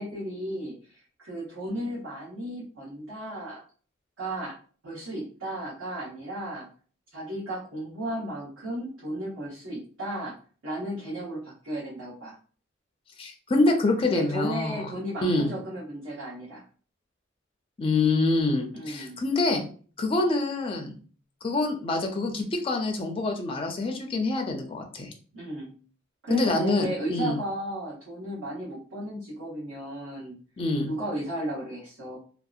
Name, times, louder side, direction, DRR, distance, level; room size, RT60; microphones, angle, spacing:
voice 1, 0.0-3.6 4.2-4.5 4.8-6.7 7.1-10.3 10.6-12.4 14.1-16.6 18.7-19.2 25.3-25.7 26.2-30.4 30.9-32.2, right 1 dB, 75° right, -8 dB, 0.9 m, -34 dB
voice 2, 13.2-14.9 15.2-15.5 17.8-19.6 20.0-21.0 21.4-25.1 26.3-27.4 30.6-30.9, left 2 dB, 30° left, 3 dB, 0.4 m, -26 dB
2.6 x 2.1 x 2.3 m, 0.41 s
head